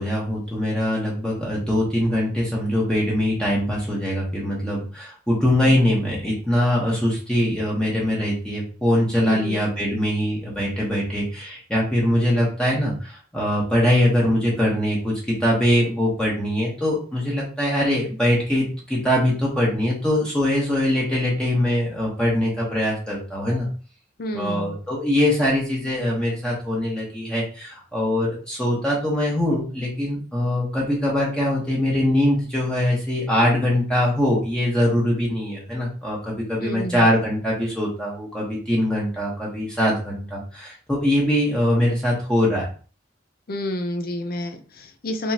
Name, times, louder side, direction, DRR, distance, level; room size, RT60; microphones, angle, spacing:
voice 1, 0.0-23.7 24.3-42.6, left 1 dB, 5° left, -5 dB, 1.3 m, -22 dB
voice 2, 9.2-9.6 24.2-24.8 36.6-37.1 43.5-45.3, left 1 dB, 50° left, 7 dB, 0.7 m, -29 dB
5.3 x 3.1 x 2.9 m, 0.38 s
head